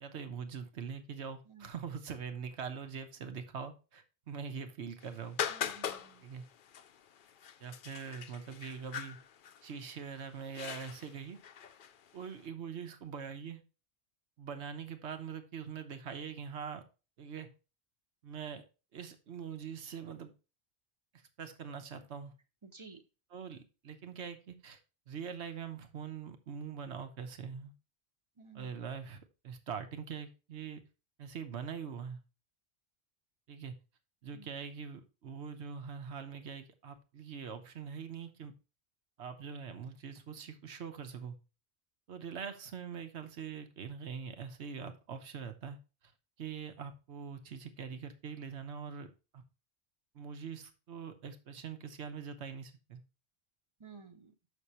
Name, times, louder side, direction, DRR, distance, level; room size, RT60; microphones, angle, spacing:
voice 1, 0.0-5.4 6.2-6.4 7.6-9.2 9.6-11.4 12.1-13.6 14.4-16.8 17.2-17.5 18.2-18.6 18.9-20.3 21.4-22.3 23.3-24.8 25.1-27.7 28.5-30.8 31.2-32.2 33.5-33.7 34.2-38.5 39.2-41.4 42.1-45.8 46.4-49.4 50.1-53.0, right 6 dB, 90° right, 8 dB, 1.2 m, -43 dB
sound 1, 5.0-12.3, left 8 dB, 60° left, 0.7 m, -42 dB
voice 2, 5.5-6.2 22.6-23.0 28.4-28.7 34.3-34.5 53.8-54.3, right 4 dB, 30° right, 8 dB, 0.9 m, -53 dB
6.5 x 6.0 x 4.3 m, 0.31 s
omnidirectional pair, 1.1 m